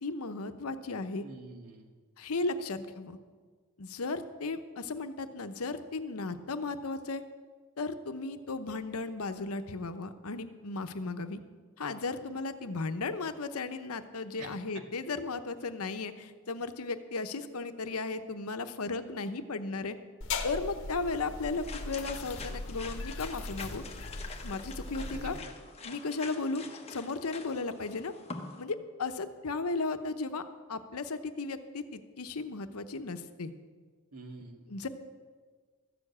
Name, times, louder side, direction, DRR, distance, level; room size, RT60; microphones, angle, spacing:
voice 1, 0.0-1.2 2.2-3.2 3.8-7.2 7.8-11.4 11.8-20.0 20.4-23.8 24.4-25.4 25.8-28.1 28.6-33.5 34.7-34.9, left 3 dB, 75° left, 9 dB, 0.8 m, -35 dB
voice 2, 1.2-1.9 14.4-14.5 25.0-25.5 34.1-34.7, right 2 dB, 85° right, 3 dB, 1.9 m, -47 dB
sound 1, 20.2-25.4, left 3 dB, 60° left, 1.1 m, -39 dB
sound 2, 21.1-28.6, left 4 dB, 30° left, 1.0 m, -46 dB
13.5 x 7.0 x 8.5 m, 1.5 s
head